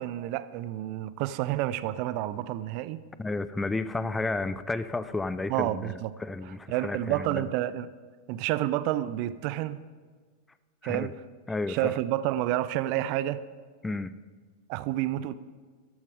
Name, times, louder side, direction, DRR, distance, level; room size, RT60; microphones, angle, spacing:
voice 1, 0.0-3.0 5.5-6.1 6.7-7.9 8.3-9.8 10.8-11.1 11.7-13.4 14.7-15.3, right 14 dB, 45° right, 0.5 m, -29 dB
voice 2, 3.2-7.5 10.8-11.1 11.5-12.0 13.8-14.1, left 3 dB, 10° left, 0.5 m, -32 dB
13.5 x 13.0 x 5.1 m
figure-of-eight pair, 90°, 0 cm